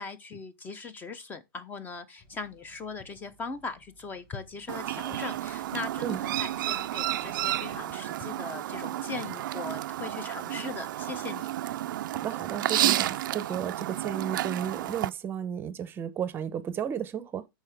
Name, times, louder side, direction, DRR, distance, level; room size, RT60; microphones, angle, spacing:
voice 1, 0.0-11.5, left 4 dB, 15° left, 0.9 m, -40 dB
sound 1, 2.2-8.3, left 5 dB, 30° left, 5.1 m, -52 dB
Chirp tweet, 4.7-15.1, right 14 dB, 60° right, 0.5 m, -31 dB
voice 2, 12.1-17.5, right 8 dB, 20° right, 0.8 m, -33 dB
13.0 x 4.6 x 3.5 m
hypercardioid pair, 145°, 12 cm